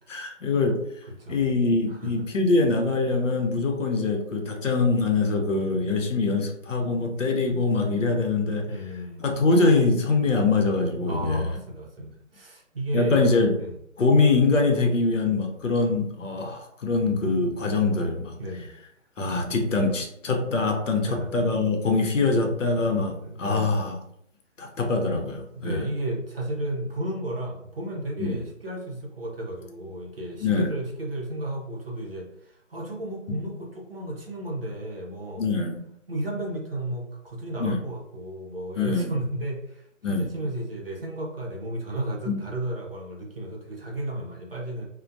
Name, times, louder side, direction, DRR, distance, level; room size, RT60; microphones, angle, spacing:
voice 1, 0.1-0.8 1.3-8.7 9.2-11.5 12.9-13.6 14.0-18.4 19.2-24.0 24.6-25.9 28.2-28.4 30.4-30.7 35.4-35.8 37.6-37.8 38.8-39.1 40.0-40.3 42.3-42.4, left 3 dB, 70° left, 2 dB, 0.7 m, -23 dB
voice 2, 1.1-1.4 1.9-2.1 8.7-9.3 11.1-13.2 13.6-13.8 18.4-18.7 21.1-21.3 23.2-23.8 25.5-35.5 36.1-44.9, right 1 dB, 50° right, -1 dB, 0.6 m, -33 dB
2.2 x 2.1 x 2.6 m, 0.74 s
hypercardioid pair, 175°, 39 cm